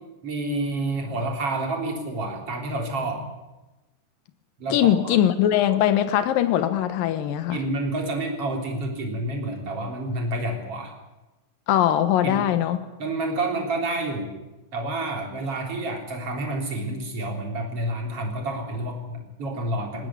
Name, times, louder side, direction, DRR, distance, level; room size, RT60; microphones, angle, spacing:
voice 1, 0.2-3.3 4.6-5.1 7.5-10.9 12.2-12.4 13.0-14.3 14.7-20.1, right 2 dB, 30° right, 2 dB, 4.0 m, -29 dB
voice 2, 4.7-7.6 11.7-12.8, left 11 dB, 70° left, 11 dB, 2.2 m, -21 dB
19.0 x 18.0 x 9.6 m, 1.0 s
omnidirectional pair, 5.6 m